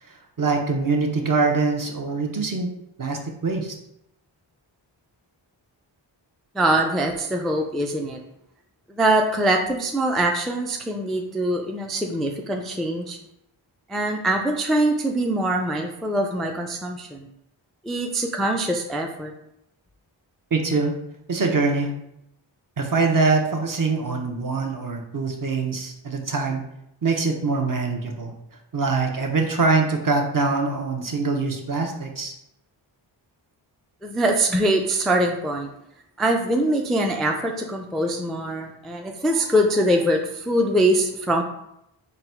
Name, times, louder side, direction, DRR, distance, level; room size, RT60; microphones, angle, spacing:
voice 1, 0.4-2.7 3.0-3.7 20.5-20.9 21.3-21.9 22.8-26.6 27.0-28.3 28.7-32.3, right 4 dB, 45° right, 2 dB, 0.7 m, -23 dB
voice 2, 6.5-8.2 8.9-13.2 13.9-17.3 17.8-19.3 34.0-35.7 36.2-41.4, right 1 dB, ahead, 2 dB, 0.3 m, -23 dB
3.9 x 2.2 x 4.3 m, 0.81 s
wide cardioid pair, 55°, 47 cm